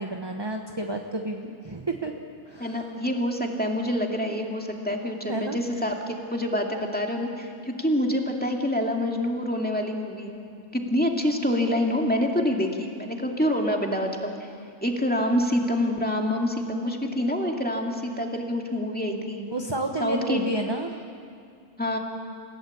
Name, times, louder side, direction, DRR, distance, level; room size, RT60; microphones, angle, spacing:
voice 1, 0.0-2.1 2.5-2.9 5.3-5.6 19.5-21.0, right 2 dB, 20° right, 3 dB, 1.0 m, -30 dB
voice 2, 2.6-10.5 10.7-14.3 14.8-19.4 20.0-20.4 21.8-22.0, left 1 dB, 5° left, 1 dB, 2.2 m, -26 dB
29.0 x 16.5 x 8.6 m, 2.4 s
omnidirectional pair, 1.5 m